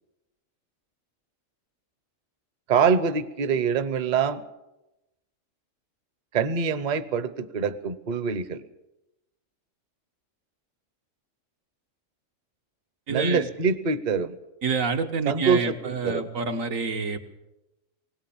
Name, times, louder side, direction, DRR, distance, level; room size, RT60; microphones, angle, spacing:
voice 1, 2.7-4.4 6.3-8.6 13.1-14.4 15.3-16.3, right 6 dB, 40° right, 13 dB, 0.8 m, -25 dB
voice 2, 13.1-13.5 14.6-17.2, right 4 dB, 80° right, 6 dB, 1.8 m, -27 dB
20.5 x 17.5 x 7.1 m, 0.96 s
omnidirectional pair, 1.4 m